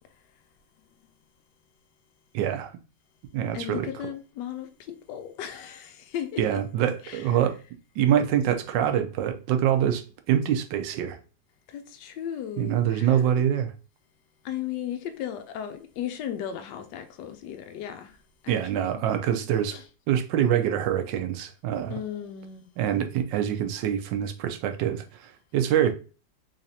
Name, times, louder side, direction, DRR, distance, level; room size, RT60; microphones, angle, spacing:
voice 1, 2.3-2.7 3.3-3.9 6.4-7.6 8.0-11.2 12.6-13.7 18.5-19.8 20.1-22.0 22.8-25.9, right 10 dB, 80° right, 1.3 m, -25 dB
voice 2, 3.5-6.4 7.0-7.2 11.7-13.2 14.4-18.2 18.4-19.4 19.7-19.8 21.9-22.7, left 10 dB, 75° left, 1.2 m, -36 dB
4.0 x 3.2 x 2.7 m
omnidirectional pair, 2.0 m